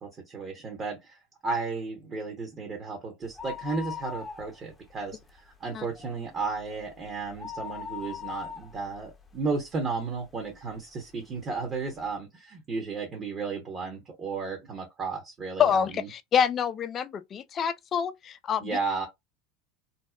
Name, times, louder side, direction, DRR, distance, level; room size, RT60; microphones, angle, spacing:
voice 1, 0.0-15.6 16.0-16.1 18.6-19.1, right 4 dB, 35° right, 1.0 m, -34 dB
sound 1, 3.2-4.9 5.2-5.3 5.8-10.2 10.7-10.8 11.6-11.7 11.9-12.0, left 7 dB, 15° left, 0.7 m, -40 dB
voice 2, 15.6-18.8, left 8 dB, 40° left, 0.3 m, -27 dB
2.7 x 2.0 x 2.3 m
hypercardioid pair, 85°, 0 cm